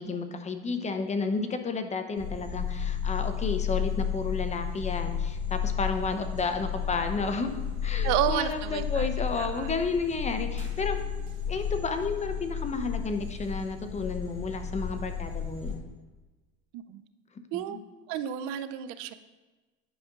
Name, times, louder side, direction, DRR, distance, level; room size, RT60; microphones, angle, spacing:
voice 1, 0.0-7.5 7.8-11.0 11.5-15.9 17.5-17.8, left 4 dB, 20° left, 7 dB, 0.6 m, -32 dB
sound 1, 2.1-15.8, left 7 dB, 90° right, 1.7 m, -32 dB
voice 2, 8.0-9.1 9.4-9.7 16.7-17.0 17.5-17.8 18.1-19.1, right 11 dB, 65° right, 12 dB, 0.5 m, -31 dB
10.0 x 5.0 x 2.4 m, 1.2 s
supercardioid pair, 100°, 31 cm